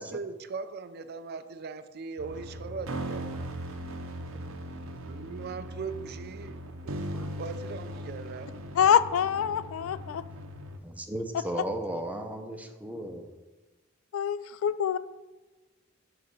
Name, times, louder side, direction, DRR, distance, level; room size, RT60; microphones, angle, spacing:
voice 1, 0.0-3.4 5.1-7.0 7.3-8.5, right 4 dB, 50° right, 11 dB, 0.4 m, -39 dB
sound 1, 2.2-10.8, right 1 dB, 80° right, 0.7 m, -39 dB
voice 2, 8.8-10.2 14.1-15.0, left 8 dB, 80° left, 15 dB, 0.3 m, -25 dB
voice 3, 10.8-13.3, right 1 dB, 5° right, 4 dB, 0.6 m, -36 dB
6.5 x 4.0 x 6.4 m, 1.2 s
head